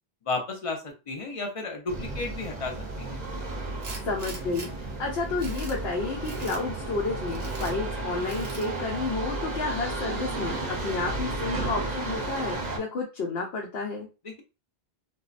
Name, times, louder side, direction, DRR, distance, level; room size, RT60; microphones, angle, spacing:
voice 1, 0.2-3.2 14.2-14.4, left 3 dB, 40° left, 2 dB, 0.6 m, -33 dB
sound 1, 1.9-12.8, right 2 dB, 50° right, 0.7 m, -33 dB
Tools, 3.8-4.7 5.2-5.8 6.2-6.6 7.3-7.7 8.3-8.7, right 3 dB, 80° right, 1.0 m, -42 dB
voice 2, 4.0-4.7 5.0-14.1, left 3 dB, 80° left, -1 dB, 0.8 m, -31 dB
2.5 x 2.1 x 2.4 m, 0.29 s
omnidirectional pair, 1.0 m